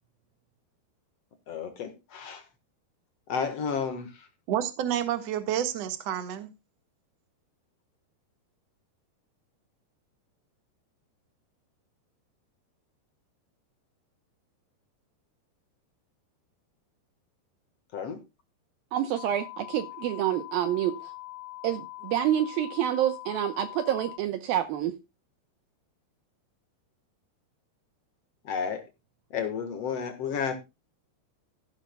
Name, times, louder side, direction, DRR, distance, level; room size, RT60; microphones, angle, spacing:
voice 1, 1.5-2.4 3.3-4.3 17.9-18.2 28.5-28.9 29.3-30.6, left 6 dB, 60° left, 1.7 m, -32 dB
voice 2, 4.5-6.5, right 10 dB, 55° right, 1.9 m, -29 dB
voice 3, 18.9-21.1 21.6-24.9, right 11 dB, 75° right, 2.3 m, -28 dB
sound 1, 19.2-24.2, left 19 dB, 85° left, 2.8 m, -42 dB
15.5 x 11.0 x 2.2 m
omnidirectional pair, 4.9 m